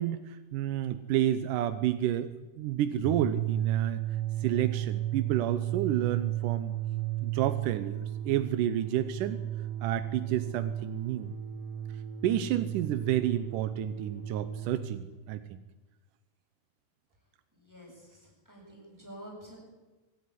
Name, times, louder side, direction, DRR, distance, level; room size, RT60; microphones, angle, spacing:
voice 1, 0.0-2.3 2.6-4.0 4.4-6.8 7.2-9.4 9.8-11.3 12.2-15.6, right 12 dB, 90° right, 11 dB, 2.4 m, -30 dB
sound 1, 2.9-14.8, right 11 dB, 65° right, 5.6 m, -34 dB
voice 2, 17.5-19.6, equal, 5° right, -2 dB, 7.7 m, -49 dB
23.5 x 13.0 x 10.0 m, 1.2 s
omnidirectional pair, 3.6 m